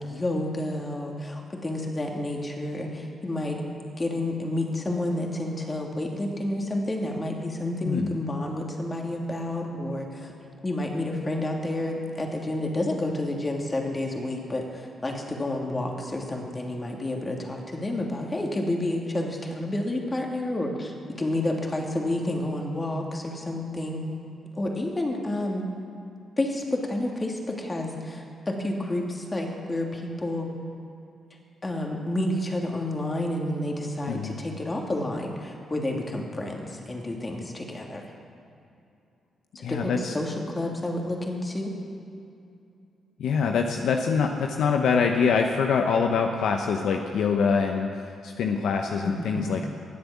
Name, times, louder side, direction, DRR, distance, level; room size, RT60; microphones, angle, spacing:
voice 1, 0.1-3.6 4.0-10.3 10.6-24.0 24.5-25.6 26.4-30.5 31.6-38.0 39.5-41.7 49.0-49.4, left 1 dB, 30° left, 1 dB, 2.8 m, -30 dB
voice 2, 39.6-40.1 43.2-49.7, left 5 dB, 70° left, 4 dB, 0.8 m, -24 dB
19.0 x 7.9 x 7.2 m, 2.6 s
hypercardioid pair, 45°, 0 cm